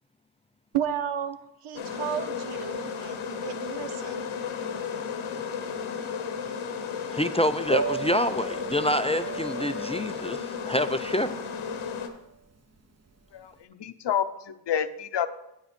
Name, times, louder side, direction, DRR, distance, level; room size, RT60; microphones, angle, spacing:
voice 1, 0.7-4.3, right 9 dB, 75° right, 11 dB, 0.8 m, -33 dB
sound 1, 1.8-12.1, left 6 dB, 85° left, 1.0 m, -34 dB
voice 2, 7.1-11.5, equal, 15° left, 11 dB, 0.3 m, -27 dB
Piano, 7.7-13.6, right 6 dB, 30° right, 0.9 m, -37 dB
voice 3, 13.3-15.3, left 9 dB, 60° left, 11 dB, 0.7 m, -29 dB
8.9 x 6.1 x 5.2 m, 0.86 s
cardioid pair, 50°, 49 cm